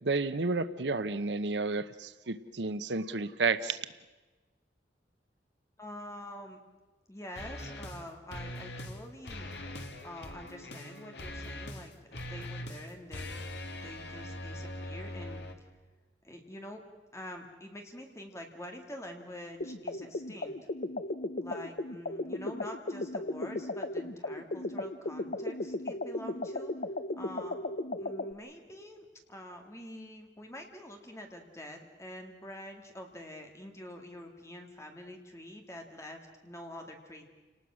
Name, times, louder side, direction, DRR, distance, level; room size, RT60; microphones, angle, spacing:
voice 1, 0.0-3.8, right 3 dB, 75° right, 13 dB, 0.9 m, -31 dB
voice 2, 5.8-6.6 7.1-9.5 10.0-13.4 13.7-15.4 16.2-16.8 17.1-20.6 21.4-26.7 27.2-27.6 28.0-37.2, left 1 dB, 15° left, 3 dB, 2.2 m, -46 dB
sound 1, 7.4-8.0 8.3-9.0 9.2-15.5, left 1 dB, 70° left, 2.2 m, -42 dB
sound 2, 19.6-28.3, left 2 dB, 50° left, 0.8 m, -36 dB
30.0 x 19.0 x 6.3 m, 1.2 s
head